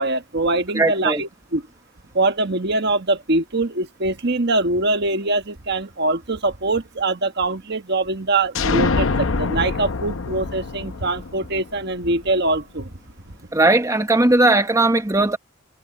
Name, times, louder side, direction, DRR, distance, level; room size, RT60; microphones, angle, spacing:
voice 1, 0.0-1.6 2.1-12.9, right 2 dB, 55° right, 1.4 m, -23 dB
voice 2, 0.7-1.2 13.5-15.4, right 2 dB, 15° right, 1.1 m, -17 dB
sound 1, 8.5-12.2, left 4 dB, 75° left, 0.8 m, -25 dB
head